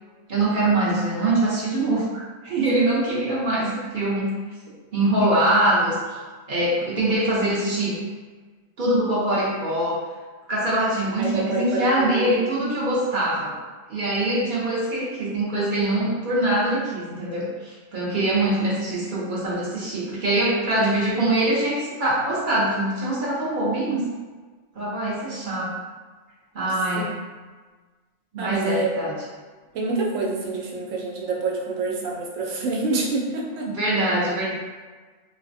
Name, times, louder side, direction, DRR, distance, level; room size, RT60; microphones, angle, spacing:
voice 1, 0.3-4.3 4.9-6.0 6.5-8.0 8.8-10.0 10.5-13.6 13.9-24.1 24.8-25.7 26.5-27.1 28.3-29.1 33.7-34.5, right 1 dB, 50° right, -7 dB, 0.7 m, -23 dB
voice 2, 11.2-12.4 27.0-27.1 28.4-28.9 29.7-33.7, right 3 dB, 75° right, -1 dB, 1.0 m, -27 dB
3.2 x 2.0 x 2.5 m, 1.4 s
omnidirectional pair, 1.3 m